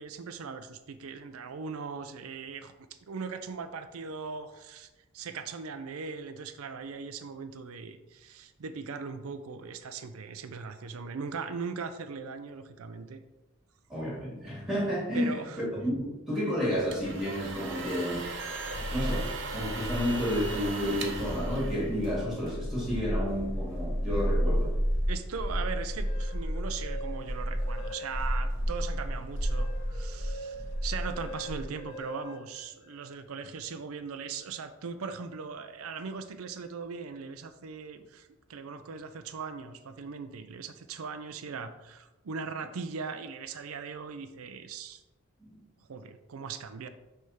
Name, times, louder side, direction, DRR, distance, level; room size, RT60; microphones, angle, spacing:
voice 1, 0.0-2.7 3.1-4.9 5.1-13.2 15.1-15.6 25.1-45.0 45.9-46.9, right 5 dB, 85° right, 9 dB, 0.5 m, -39 dB
voice 2, 13.9-18.2 18.9-24.7 45.4-45.6, equal, ahead, -5 dB, 2.4 m, -31 dB
sound 1, 16.7-22.4, right 3 dB, 60° right, 0.9 m, -39 dB
sound 2, 18.1-31.6, equal, 60° left, 2.4 m, -32 dB
sound 3, 25.8-28.5 28.9-33.2, equal, 25° left, 2.4 m, -45 dB
6.2 x 3.4 x 5.7 m, 1.0 s
head